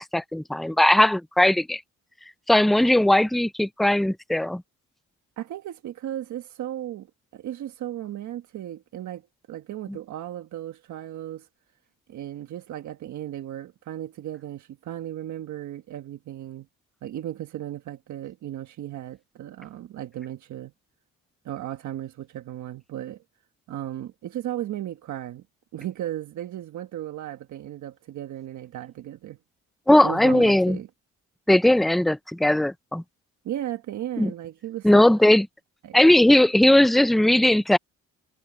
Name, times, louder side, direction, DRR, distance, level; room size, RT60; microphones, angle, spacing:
voice 1, 0.0-1.8 2.5-4.6 29.9-30.8 31.5-33.0 34.2-34.3 34.8-35.5 35.9-37.8, left 1 dB, ahead, 0.4 m, -18 dB
voice 2, 5.4-7.1 7.3-9.2 9.5-11.5 12.1-16.7 17.0-20.7 21.4-23.2 23.7-25.4 25.7-29.4 30.0-30.9 33.4-34.9 35.8-36.0, right 12 dB, 70° right, 1.4 m, -35 dB
cardioid pair, 90°, 30 cm